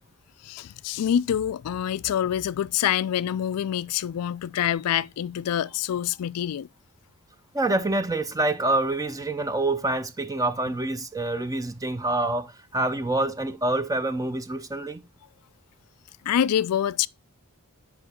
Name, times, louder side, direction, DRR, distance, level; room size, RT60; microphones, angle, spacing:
voice 1, 0.4-6.7 16.2-17.1, left 10 dB, 90° left, 0.3 m, -26 dB
voice 2, 7.5-15.0, right 2 dB, 15° right, 0.6 m, -26 dB
8.6 x 5.4 x 4.3 m
head